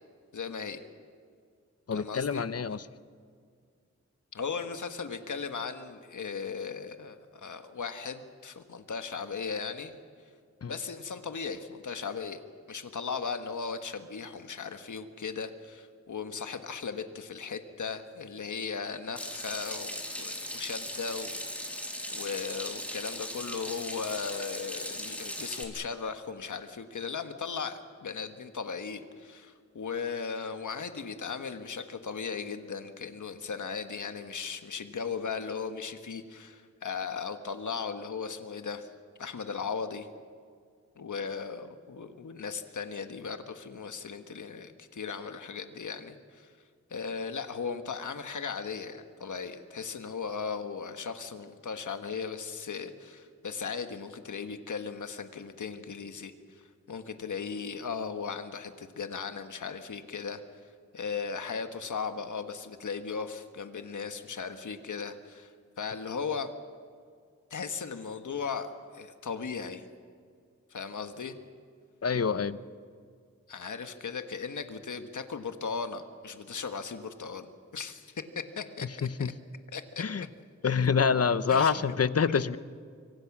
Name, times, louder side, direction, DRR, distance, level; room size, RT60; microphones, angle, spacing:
voice 1, 0.3-0.8 1.9-2.5 4.3-10.0 10.7-12.4 12.7-21.8 22.1-38.9 39.2-40.1 40.9-46.5 46.9-56.6 56.9-60.4 60.9-66.5 67.5-69.8 70.7-71.3 73.5-79.3 79.7-80.0 81.5-81.9, left 5 dB, 85° left, 8 dB, 1.4 m, -37 dB
voice 2, 1.9-2.8 10.6-10.7 72.0-72.6 79.0-79.3 80.0-80.3 80.6-82.6, left 6 dB, 55° left, 14 dB, 0.9 m, -26 dB
Water tap faucet / Sink (filling or washing), 19.2-25.6, equal, 5° left, 3.4 m, -38 dB
25.5 x 25.0 x 6.1 m, 2.1 s
wide cardioid pair, 100°, 29 cm